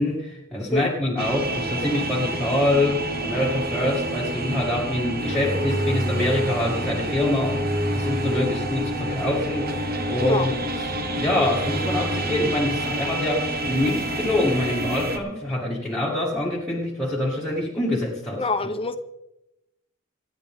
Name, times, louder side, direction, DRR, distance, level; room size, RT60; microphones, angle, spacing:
voice 1, 0.0-9.8 10.1-10.5 10.8-18.4, left 1 dB, 5° left, 2.1 m, -25 dB
sound 1, 1.2-15.2, right 1 dB, 45° right, 1.5 m, -27 dB
voice 2, 18.3-19.0, left 2 dB, 25° left, 1.0 m, -25 dB
27.5 x 9.5 x 3.7 m
head